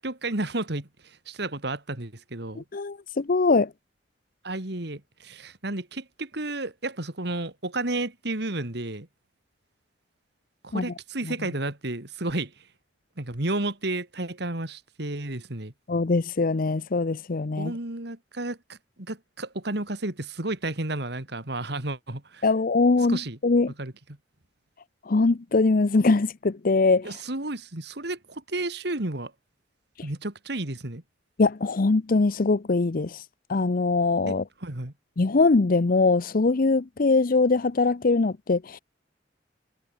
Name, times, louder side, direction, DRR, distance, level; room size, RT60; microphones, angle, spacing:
voice 1, 0.0-2.6 4.4-9.1 10.6-12.5 13.2-15.7 17.6-22.4 23.1-23.4 23.8-23.9 27.0-29.3 30.0-31.0 34.3-34.9, right 2 dB, 65° right, 2.8 m, -32 dB
voice 2, 2.6-3.7 10.7-10.9 15.9-17.7 22.4-23.7 25.1-27.2 31.4-33.2 33.5-34.4 35.2-38.8, left 3 dB, 50° left, 0.6 m, -22 dB
head